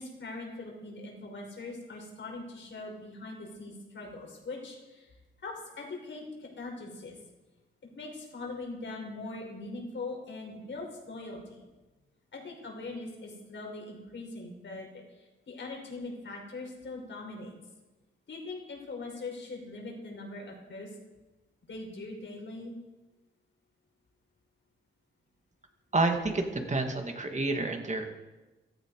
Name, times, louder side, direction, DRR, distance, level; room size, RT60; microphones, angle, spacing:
voice 1, 0.0-5.1 5.4-7.2 7.9-11.6 12.3-14.9 15.2-17.5 18.3-20.9 21.7-22.7, left 3 dB, 65° left, 0 dB, 5.3 m, -41 dB
voice 2, 25.9-28.1, right 2 dB, 35° right, 4 dB, 2.4 m, -29 dB
16.5 x 14.0 x 4.9 m, 1.1 s
cardioid pair, 70°, 21 cm